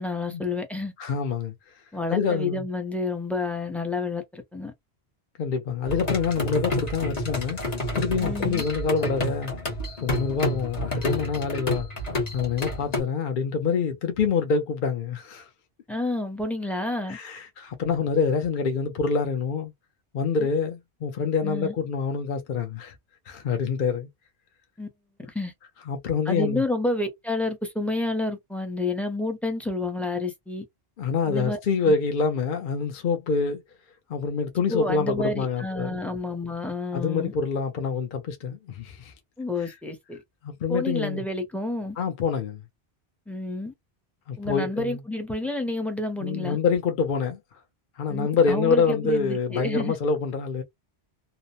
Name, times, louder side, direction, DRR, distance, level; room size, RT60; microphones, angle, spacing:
voice 1, 0.0-0.9 1.9-4.7 8.2-8.6 15.9-17.2 20.4-20.5 21.4-21.7 24.8-24.9 25.3-25.5 26.3-30.6 31.3-31.6 31.9-32.0 34.7-37.3 39.4-40.2 40.7-42.0 43.3-43.7 44.4-46.6 48.1-50.0, left 2 dB, ahead, 0.4 m, -29 dB
voice 2, 1.0-1.5 2.1-2.6 5.4-9.5 10.0-11.9 12.3-15.5 17.1-19.7 20.1-22.9 23.3-24.1 25.9-26.6 31.0-33.6 34.1-36.0 36.9-39.1 39.6-39.7 40.4-41.2 42.0-42.6 44.3-45.0 46.2-47.4 48.0-50.6, left 5 dB, 55° left, 0.7 m, -26 dB
sound 1, 5.8-13.0, left 1 dB, 40° left, 1.1 m, -29 dB
2.8 x 2.0 x 2.4 m
omnidirectional pair, 1.1 m